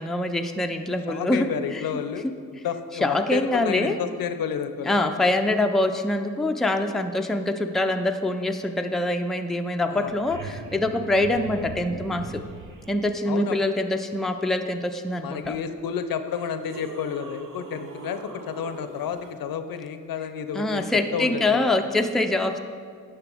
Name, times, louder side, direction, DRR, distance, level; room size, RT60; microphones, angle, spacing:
voice 1, 0.0-1.8 3.0-4.0 4.9-12.4 12.9-15.6 20.5-22.6, left 2 dB, ahead, 5 dB, 0.4 m, -24 dB
voice 2, 1.1-2.3 2.6-5.0 9.9-10.2 13.3-13.6 15.2-20.8 21.1-21.7, left 7 dB, 85° left, 9 dB, 0.6 m, -31 dB
sound 1, 9.6-9.7 9.8-12.9 15.4-15.5 16.2-19.3 21.8-21.9, right 4 dB, 65° right, 0.9 m, -40 dB
9.8 x 6.7 x 3.4 m, 2.2 s
cardioid pair, 95°, 34 cm